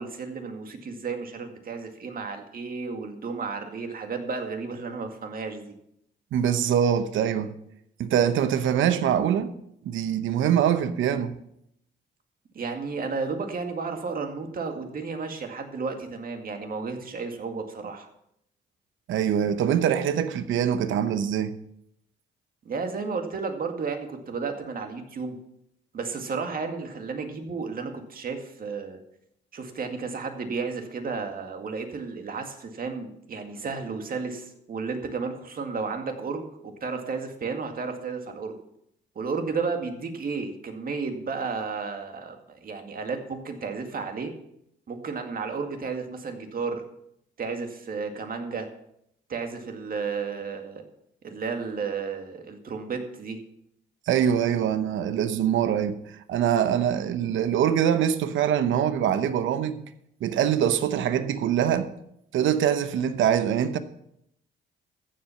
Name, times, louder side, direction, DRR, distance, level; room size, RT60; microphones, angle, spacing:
voice 1, 0.0-5.7 12.5-18.1 22.7-25.4 25.9-29.0 29.5-38.6 39.2-44.3 44.9-46.8 47.4-48.7 49.3-50.8 51.2-53.4, right 4 dB, 45° right, 2.1 m, -33 dB
voice 2, 6.3-7.5 8.0-9.5 9.8-11.4 19.1-21.5 54.1-56.0 56.3-59.8 60.2-61.9 62.3-63.8, right 9 dB, 75° right, 1.0 m, -24 dB
14.5 x 7.5 x 5.8 m
cardioid pair, 90°, 20 cm